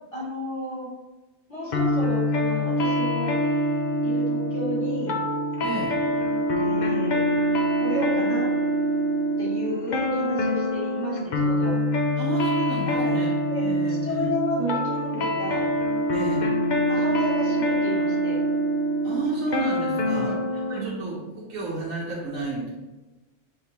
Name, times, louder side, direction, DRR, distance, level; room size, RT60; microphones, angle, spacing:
voice 1, 0.1-0.9 1.5-3.4 4.0-5.2 6.6-7.3 7.8-8.5 9.4-11.8 12.9-13.2 13.5-15.8 16.9-18.5 20.0-21.3, equal, 25° left, -7 dB, 1.4 m, -32 dB
sound 1, 1.7-20.8, equal, 55° left, 0.5 m, -25 dB
voice 2, 5.6-6.0 12.2-14.3 16.1-16.4 19.0-22.7, right 2 dB, 80° right, -6 dB, 1.3 m, -32 dB
5.6 x 3.3 x 2.9 m, 1.1 s
omnidirectional pair, 1.3 m